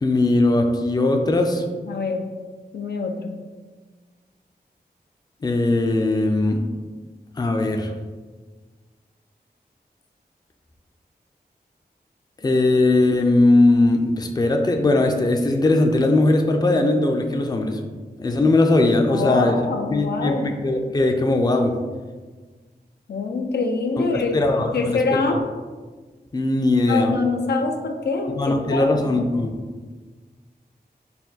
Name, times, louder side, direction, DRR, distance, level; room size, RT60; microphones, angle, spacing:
voice 1, 0.0-1.6 5.4-6.6 7.4-7.9 12.4-17.8 18.2-19.6 19.9-21.7 24.1-25.4 26.3-27.1 28.4-29.6, left 2 dB, 25° left, 3 dB, 0.4 m, -19 dB
voice 2, 1.8-2.3 2.7-3.4 19.1-20.5 23.1-25.4 26.9-29.3, left 3 dB, 85° left, 4 dB, 0.4 m, -25 dB
4.1 x 2.2 x 4.0 m, 1.4 s
wide cardioid pair, 75°, 17 cm